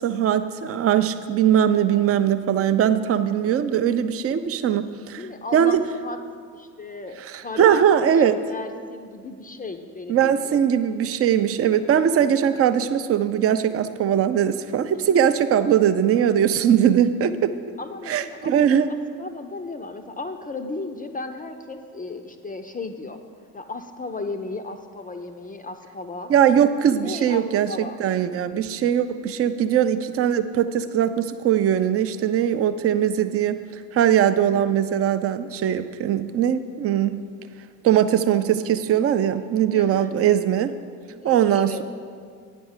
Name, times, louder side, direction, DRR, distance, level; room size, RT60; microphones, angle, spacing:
voice 1, 0.0-5.2 5.5-5.8 7.6-8.4 10.1-17.5 18.1-18.9 26.3-33.6 33.9-37.2 37.8-40.7 41.2-41.8, right 9 dB, 30° right, 11 dB, 0.5 m, -20 dB
voice 2, 5.2-6.2 6.5-10.6 15.0-15.1 17.8-23.2 23.5-26.3 26.9-28.0 39.7-40.3 41.2-41.8, left 3 dB, 15° left, 7 dB, 0.5 m, -35 dB
9.2 x 5.2 x 7.2 m, 2.1 s
figure-of-eight pair, 50°, 49 cm